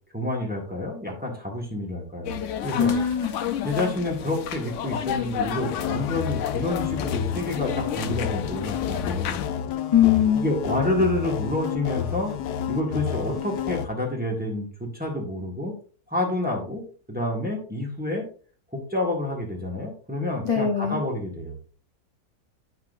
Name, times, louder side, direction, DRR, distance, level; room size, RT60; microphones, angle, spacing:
voice 1, 0.1-2.4 2.6-2.9 3.6-9.5 10.4-12.3 12.7-15.7 16.1-18.3 18.7-21.5, left 1 dB, 5° right, -2 dB, 1.5 m, -28 dB
sound 1, 2.2-9.5, left 9 dB, 65° left, 0.8 m, -32 dB
voice 2, 2.8-3.3 9.9-10.4 20.4-21.0, left 9 dB, 25° left, -1 dB, 0.8 m, -21 dB
sound 2, 5.6-13.9, left 9 dB, 85° left, 1.2 m, -30 dB
8.7 x 5.8 x 2.6 m, 0.42 s
omnidirectional pair, 1.7 m